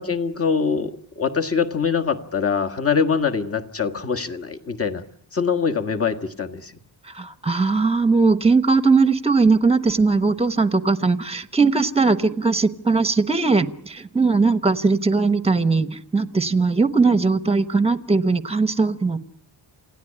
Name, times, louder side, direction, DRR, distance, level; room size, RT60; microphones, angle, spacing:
voice 1, 0.0-5.0 5.3-6.7, left 6 dB, 30° left, 6 dB, 1.7 m, -23 dB
voice 2, 7.1-19.2, right 4 dB, 15° right, 13 dB, 1.1 m, -19 dB
28.0 x 17.0 x 10.0 m, 0.69 s
wide cardioid pair, 155°, 45 cm